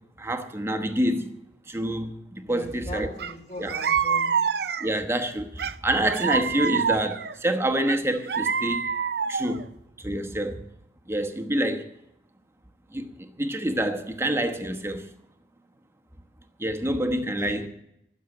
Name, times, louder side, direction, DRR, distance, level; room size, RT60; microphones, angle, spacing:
voice 1, 0.0-1.3 1.7-3.1 3.6-3.7 4.8-8.8 9.3-9.7 10.0-10.6 11.1-11.9 12.9-15.1 16.6-17.7, right 1 dB, 15° right, 1.1 m, -27 dB
voice 2, 2.5-4.3 17.4-17.7, left 1 dB, 45° left, 4.1 m, -39 dB
sound 1, 3.2-3.3 3.7-5.0 5.6-7.3 7.9-9.6, right 6 dB, 65° right, 0.6 m, -26 dB
15.0 x 7.3 x 9.0 m
head